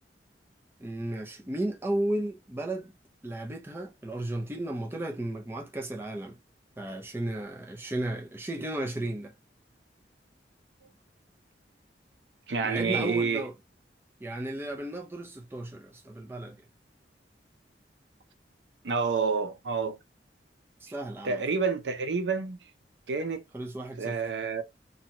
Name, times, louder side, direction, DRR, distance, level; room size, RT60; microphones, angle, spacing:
voice 1, 0.8-2.9 3.2-6.4 6.8-9.3 12.6-13.5 14.2-16.6 20.8-21.4 23.5-24.2, right 1 dB, 15° right, 0.5 m, -34 dB
voice 2, 12.5-13.5 18.8-20.0 21.2-22.6 23.1-23.4 24.0-24.6, right 5 dB, 85° right, 0.5 m, -28 dB
2.6 x 2.2 x 2.8 m
head